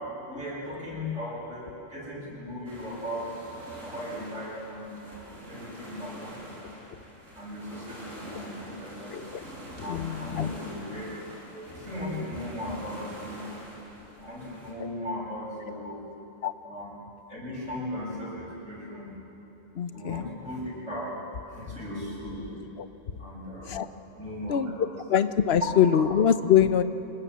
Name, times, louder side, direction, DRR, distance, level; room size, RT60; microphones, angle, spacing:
voice 1, 0.3-6.6 7.4-9.1 9.8-11.2 11.5-13.4 14.2-16.0 16.6-16.9 17.3-19.1 19.9-21.1 21.5-22.5 23.2-23.8 24.2-24.9, left 1 dB, 70° right, -5 dB, 7.9 m, -37 dB
sound 1, 2.7-14.7, equal, 90° right, 6.0 m, -45 dB
voice 2, 9.1-9.4 9.8-10.5 14.8-14.9 16.4-16.5 19.7-20.3 22.8-22.9 23.7-23.9 24.5-26.8, left 9 dB, 55° left, 11 dB, 1.1 m, -24 dB
26.5 x 20.5 x 7.6 m, 2.9 s
omnidirectional pair, 1.3 m